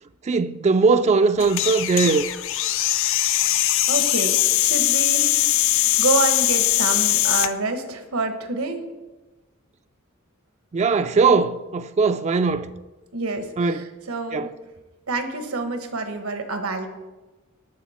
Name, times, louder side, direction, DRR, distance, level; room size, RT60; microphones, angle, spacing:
voice 1, 0.2-2.3 10.7-12.7 13.6-13.9 14.3-14.5, right 4 dB, 30° right, 0.3 m, -20 dB
sound 1, 1.4-7.5, left 15 dB, 65° left, 0.5 m, -21 dB
voice 2, 3.5-5.4 5.7-8.8 13.1-14.5 15.1-16.9, right 3 dB, 85° right, 1.3 m, -27 dB
18.0 x 6.4 x 4.3 m
head